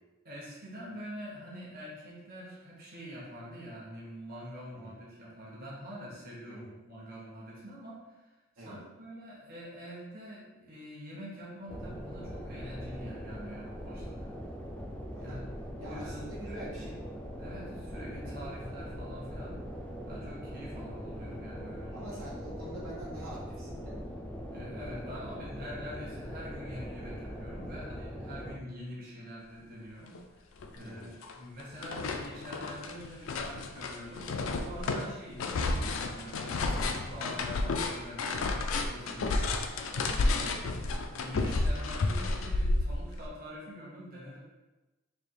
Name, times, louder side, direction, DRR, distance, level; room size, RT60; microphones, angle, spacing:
voice 1, 0.2-8.2 8.6-14.3 15.2-15.4 15.8-16.9 17.3-19.6 20.1-22.2 24.5-30.2 30.7-40.0 40.3-44.4, equal, 45° right, -6 dB, 1.1 m, -45 dB
sound 1, 11.7-28.6, equal, 5° left, 0.4 m, -41 dB
voice 2, 15.8-16.9 21.9-24.0 30.8-31.2 40.2-40.5, right 1 dB, 80° right, -6 dB, 1.2 m, -45 dB
sound 2, 30.1-30.2 30.6-31.3 31.6-43.3, left 2 dB, 70° left, 0.4 m, -31 dB
3.4 x 2.8 x 4.4 m, 1.1 s
head